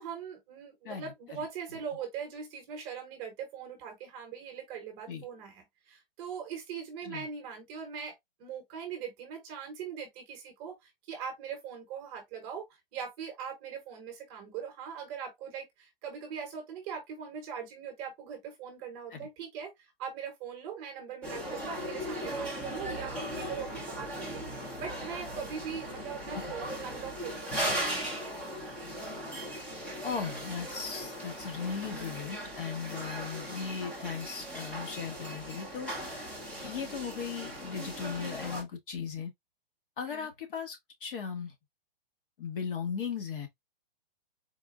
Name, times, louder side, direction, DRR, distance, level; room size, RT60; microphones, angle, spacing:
voice 1, 0.0-8.1 8.4-24.4 24.8-28.2 40.1-40.3, right 7 dB, 20° right, 1.0 m, -41 dB
voice 2, 0.8-1.4 5.1-5.3 7.0-7.3 19.1-19.3 26.3-26.7 29.6-29.7 30.0-39.3 40.0-41.5 42.4-43.5, left 6 dB, 60° left, 1.8 m, -38 dB
sound 1, 21.2-38.6, equal, 5° left, 0.5 m, -38 dB
4.2 x 3.7 x 2.4 m
hypercardioid pair, 165°, 30 cm